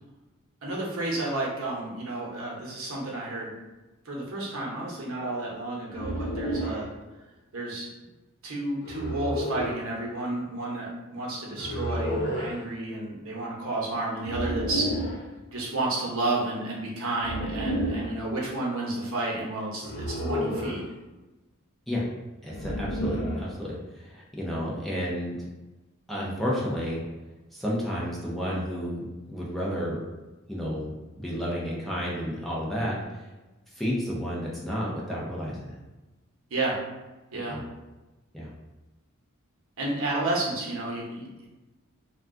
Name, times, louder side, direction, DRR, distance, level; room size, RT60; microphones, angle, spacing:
voice 1, 0.6-3.5 4.0-6.9 7.5-7.9 8.4-15.1 15.5-20.8 36.5-36.8 37.3-37.6 39.8-41.5, right 2 dB, 75° right, -3 dB, 0.8 m, -31 dB
sound 1, 5.9-6.9 8.8-9.8 11.6-12.6 14.2-15.2 17.2-18.2 19.8-20.8 22.5-23.5, equal, 55° left, 0.6 m, -31 dB
voice 2, 22.4-25.5 26.1-27.0 27.5-30.0 30.5-33.2 33.7-35.8 37.5-37.6 38.3-38.5, equal, ahead, -6 dB, 0.5 m, -31 dB
2.3 x 2.3 x 3.6 m, 1.1 s
head